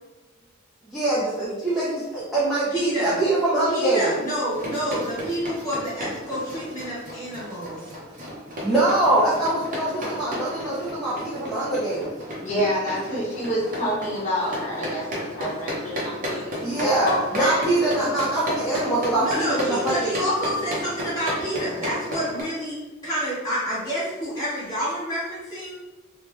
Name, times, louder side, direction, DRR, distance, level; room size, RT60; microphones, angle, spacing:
voice 1, 0.9-4.2 8.6-12.1 16.6-20.1, right 2 dB, ahead, -11 dB, 0.5 m, -23 dB
voice 2, 2.7-3.2 3.7-7.8 19.2-22.8 23.0-25.8, equal, 20° left, -11 dB, 1.2 m, -28 dB
sound 1, 4.5-22.4, equal, 40° right, 0.6 m, -33 dB
voice 3, 12.4-17.6, equal, 35° left, -8 dB, 1.0 m, -28 dB
3.4 x 2.1 x 2.9 m, 1.1 s
head